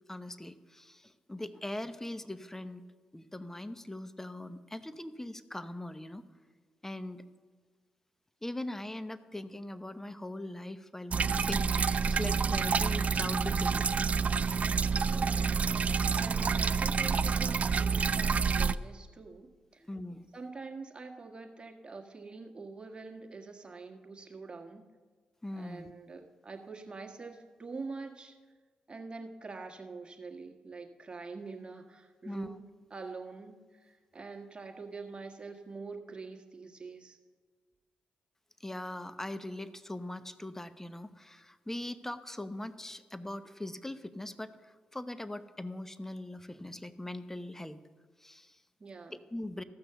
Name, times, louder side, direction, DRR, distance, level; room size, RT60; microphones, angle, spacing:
voice 1, 0.1-2.8 3.1-6.2 6.8-7.2 8.4-13.8 19.8-20.3 25.4-25.9 32.2-32.6 38.6-47.8 48.2-48.6 49.3-49.6, left 1 dB, 15° left, 12 dB, 0.8 m, -41 dB
sound 1, 11.1-18.7, right 5 dB, 50° right, 0.4 m, -28 dB
voice 2, 15.0-15.5 16.1-19.5 19.7-19.9 20.3-24.8 25.6-28.4 28.9-37.2 48.8-49.1, right 4 dB, 35° right, 2 dB, 1.6 m, -45 dB
14.5 x 6.1 x 6.8 m, 1.5 s
supercardioid pair, 45°, 3 cm